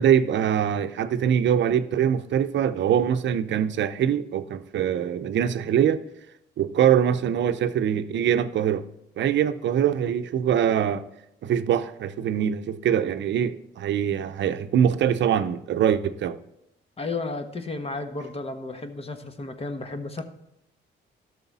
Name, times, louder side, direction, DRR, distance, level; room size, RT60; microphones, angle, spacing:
voice 1, 0.0-6.0 6.6-8.8 9.2-11.0 11.4-16.4, right 9 dB, 65° right, 0.7 m, -23 dB
voice 2, 17.0-20.2, left 3 dB, 30° left, 1.3 m, -33 dB
13.0 x 6.4 x 4.2 m
cardioid pair, 90°, 20 cm